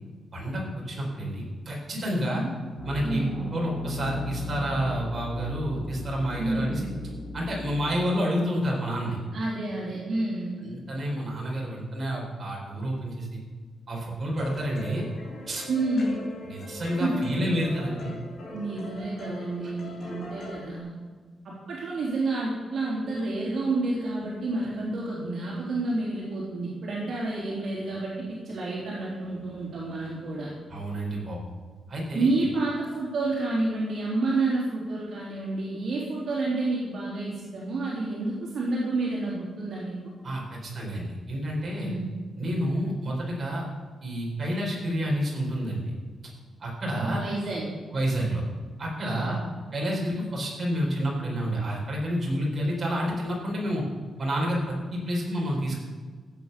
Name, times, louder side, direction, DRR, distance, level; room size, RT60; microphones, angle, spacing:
voice 1, 0.3-2.4 2.8-3.2 3.5-6.8 7.3-9.2 10.6-13.4 13.9-15.0 15.5-15.6 16.4-18.1 19.6-19.7 30.7-31.4 31.9-32.5 40.2-41.9 42.4-43.6 44.0-45.8 46.6-47.2 47.9-48.4 48.8-49.4 49.7-53.8 54.2-55.8, equal, 25° right, -4 dB, 4.4 m, -29 dB
sound 1, 2.8-7.9, left 3 dB, 5° left, 3.5 m, -37 dB
voice 2, 3.0-3.4 6.4-6.8 9.3-10.6 15.7-16.2 17.0-17.2 18.5-20.9 21.4-30.5 32.1-39.9 41.8-42.1 47.0-47.7 49.0-49.3, right 2 dB, 50° right, -5 dB, 3.5 m, -29 dB
sound 2, 14.4-20.8, left 1 dB, 45° left, 3.6 m, -41 dB
15.0 x 8.3 x 6.9 m, 1.5 s
wide cardioid pair, 180°, 0 cm